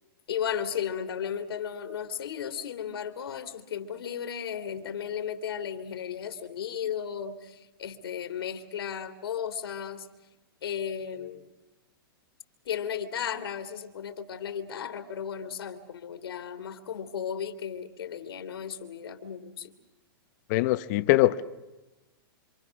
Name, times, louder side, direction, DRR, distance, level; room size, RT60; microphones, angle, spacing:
voice 1, 0.3-10.1 10.6-11.5 12.6-19.7, left 8 dB, 75° left, 2.6 m, -35 dB
voice 2, 20.5-21.4, left 18 dB, 45° left, 1.3 m, -22 dB
27.5 x 26.0 x 6.3 m
hypercardioid pair, 135°, 13 cm